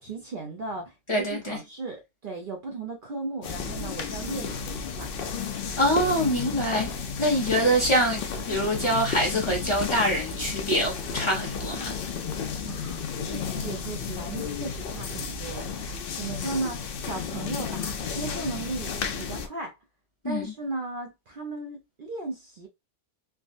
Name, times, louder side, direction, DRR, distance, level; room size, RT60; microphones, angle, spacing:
voice 1, 0.0-5.1 12.6-18.9 19.2-19.7 20.2-22.7, right 3 dB, 55° right, 0.7 m, -36 dB
voice 2, 1.1-1.6 5.8-12.0 20.2-20.5, equal, 30° left, 0.8 m, -25 dB
sound 1, 3.4-19.5, left 6 dB, 60° left, 0.7 m, -33 dB
3.4 x 2.2 x 2.5 m
omnidirectional pair, 1.2 m